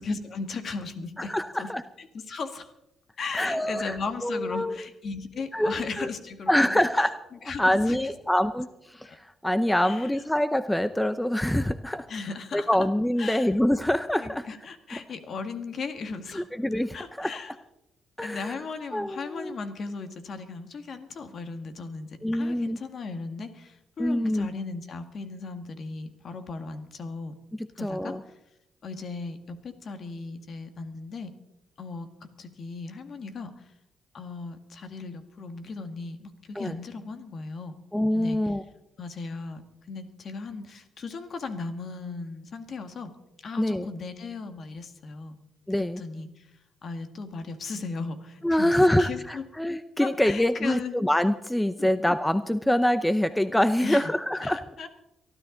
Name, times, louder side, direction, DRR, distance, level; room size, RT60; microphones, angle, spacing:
voice 1, 0.0-1.7 2.0-2.7 3.2-8.0 9.0-9.2 9.8-10.1 12.1-12.7 13.2-13.5 14.2-16.5 16.9-17.5 18.2-27.3 27.8-28.2 28.8-31.3 31.8-33.6 34.1-37.7 38.1-38.4 39.0-39.6 39.9-43.1 43.4-45.4 46.0-46.5 46.8-49.4 50.0-51.0 51.8-51.9 53.8-54.1 54.4-54.9, left 4 dB, 55° left, 8 dB, 1.9 m, -37 dB
voice 2, 1.2-1.8 3.3-4.0 4.2-4.9 5.5-6.1 6.5-7.1 7.4-12.1 12.5-14.5 16.3-17.3 18.2-18.6 18.9-19.6 22.2-22.8 24.0-24.5 27.5-28.2 36.5-36.8 37.9-38.6 43.6-43.9 45.7-46.0 48.4-54.6, left 1 dB, 5° left, 12 dB, 0.6 m, -25 dB
23.0 x 13.0 x 3.9 m, 0.86 s
cardioid pair, 90°, 0 cm